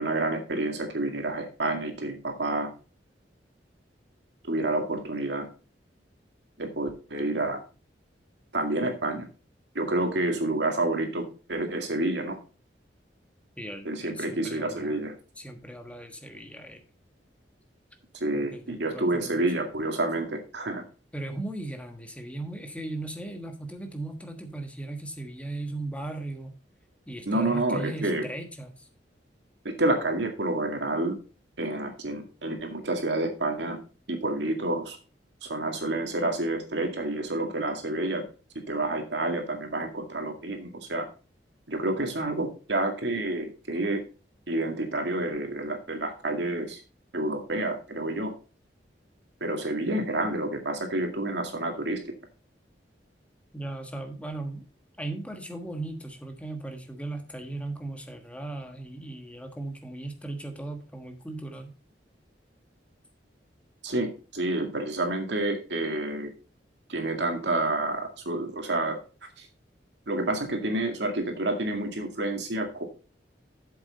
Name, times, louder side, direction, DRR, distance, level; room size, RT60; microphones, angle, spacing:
voice 1, 0.0-2.7 4.4-5.5 6.6-7.6 8.5-9.3 9.7-12.4 13.9-15.1 18.1-20.8 27.3-28.3 29.6-31.2 31.6-33.8 34.1-35.0 35.4-38.2 38.7-41.1 41.7-44.0 44.5-46.8 47.1-48.3 49.4-52.0 63.8-66.3 66.9-69.0 69.4-69.5 70.1-72.8, right 2 dB, 75° right, 4 dB, 2.1 m, -29 dB
voice 2, 13.6-15.0 15.4-16.8 18.3-19.4 21.1-26.5 27.1-28.9 53.5-54.7 55.0-61.7, right 2 dB, 5° left, 5 dB, 1.3 m, -37 dB
8.0 x 7.3 x 4.1 m, 0.34 s
head